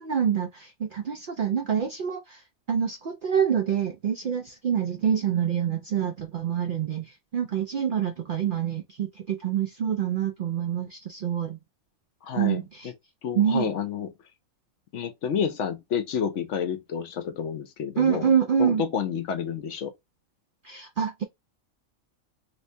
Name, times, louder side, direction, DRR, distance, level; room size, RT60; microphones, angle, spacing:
voice 1, 0.0-2.4 2.7-11.6 12.4-12.9 13.3-13.7 18.0-18.8 20.6-21.2, right 8 dB, 70° right, 0.4 m, -26 dB
voice 2, 12.2-12.9 13.2-14.1 14.9-18.3 18.6-19.9, left 7 dB, 65° left, 0.9 m, -30 dB
3.2 x 3.1 x 2.6 m
omnidirectional pair, 1.5 m